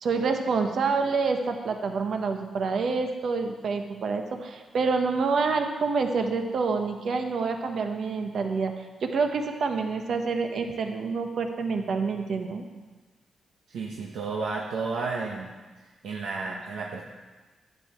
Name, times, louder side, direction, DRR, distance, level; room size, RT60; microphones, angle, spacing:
voice 1, 0.0-8.7 9.0-12.7, right 4 dB, 65° right, 5 dB, 1.1 m, -27 dB
voice 2, 13.7-15.5 15.8-17.0, right 4 dB, 85° right, -2 dB, 1.1 m, -32 dB
11.5 x 9.3 x 4.5 m, 1.3 s
cardioid pair, 95°, 0 cm